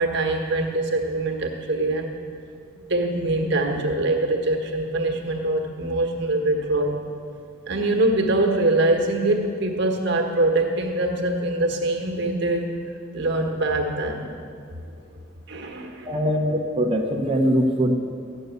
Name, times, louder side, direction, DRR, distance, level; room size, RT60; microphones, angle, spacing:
voice 1, 0.0-2.1 2.8-7.0 7.7-12.7 13.1-14.3 15.5-16.1, right 2 dB, 60° right, 3 dB, 1.5 m, -23 dB
voice 2, 16.0-17.9, equal, 30° right, -2 dB, 0.9 m, -22 dB
13.5 x 6.8 x 9.3 m, 2.4 s
head